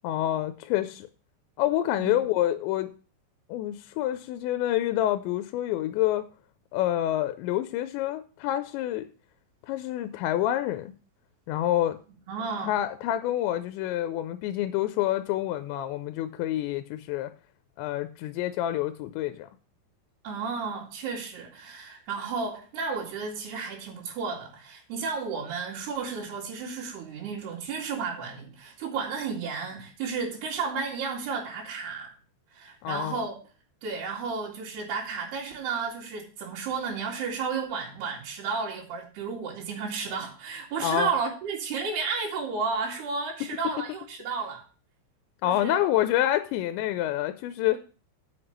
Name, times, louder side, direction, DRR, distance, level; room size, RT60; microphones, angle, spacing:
voice 1, 0.0-1.1 1.6-2.9 3.5-6.3 6.7-9.1 9.7-10.9 11.5-12.0 12.6-17.3 17.8-19.5 32.8-33.2 40.8-41.1 45.4-47.8, left 13 dB, 85° left, 10 dB, 2.9 m, -27 dB
voice 2, 12.3-12.7 20.2-32.1 32.5-33.3 33.8-44.6 45.4-45.8, right 5 dB, 65° right, -8 dB, 4.3 m, -32 dB
7.8 x 5.9 x 7.8 m, 0.37 s
omnidirectional pair, 5.2 m